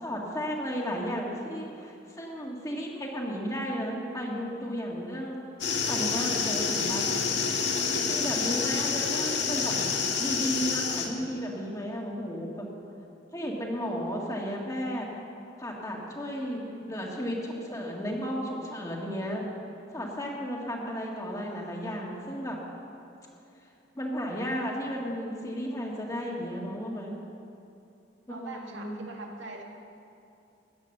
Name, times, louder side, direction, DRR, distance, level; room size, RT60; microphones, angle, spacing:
voice 1, 0.0-5.4 5.9-7.0 8.1-9.9 10.2-12.7 13.3-15.1 15.6-19.4 19.9-22.6 24.0-27.1 28.3-29.1, equal, 20° left, -1 dB, 2.0 m, -34 dB
sound 1, 5.6-11.1, left 5 dB, 70° left, 1.6 m, -28 dB
voice 2, 16.3-16.9 28.3-29.6, right 3 dB, 90° right, 1 dB, 1.9 m, -43 dB
16.5 x 9.9 x 6.7 m, 2.8 s
head